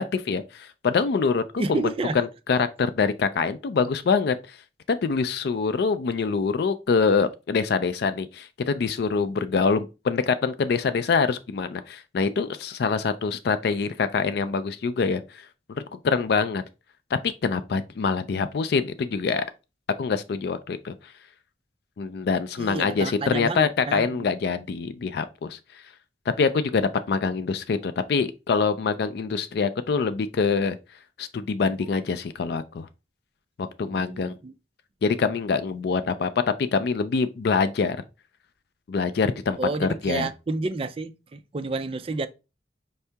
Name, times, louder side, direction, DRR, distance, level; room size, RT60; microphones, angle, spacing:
voice 1, 0.0-1.8 2.1-4.6 4.9-15.2 15.7-16.6 17.2-19.4 20.0-20.9 22.0-25.6 26.4-30.8 31.2-32.9 33.6-34.3 35.0-36.4 36.7-38.0 38.9-40.3, left 5 dB, 60° left, 0.4 m, -25 dB
voice 2, 1.6-2.2 22.6-24.3 33.9-34.5 39.6-42.3, right 3 dB, 30° right, 0.4 m, -30 dB
5.4 x 2.8 x 3.4 m
head